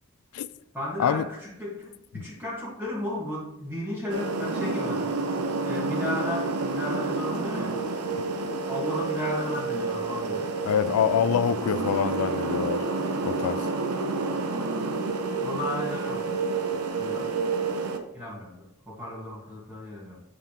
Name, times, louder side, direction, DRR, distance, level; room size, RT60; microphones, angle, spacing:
voice 1, 0.7-5.1 5.6-7.8 8.7-10.5 15.4-16.3 17.0-17.3 18.1-20.2, left 1 dB, 10° right, 1.4 m, -34 dB
sound 1, 4.1-18.0, right 3 dB, 90° right, 0.8 m, -29 dB
voice 2, 10.6-12.9 13.2-13.7, left 8 dB, 75° left, 0.3 m, -25 dB
8.0 x 7.2 x 2.9 m
head